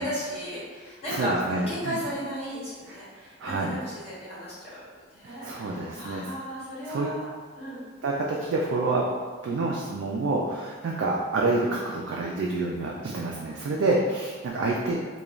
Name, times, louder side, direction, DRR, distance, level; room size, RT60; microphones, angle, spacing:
voice 1, 0.0-4.8 5.1-7.3 7.6-7.8, equal, 30° left, -11 dB, 1.1 m, -34 dB
voice 2, 1.1-2.0 2.9-3.0 3.4-3.8 5.2-6.3 6.8-7.1 8.0-9.1 9.4-15.0, right 2 dB, 80° right, -2 dB, 0.3 m, -28 dB
3.0 x 2.2 x 2.4 m, 1.5 s
head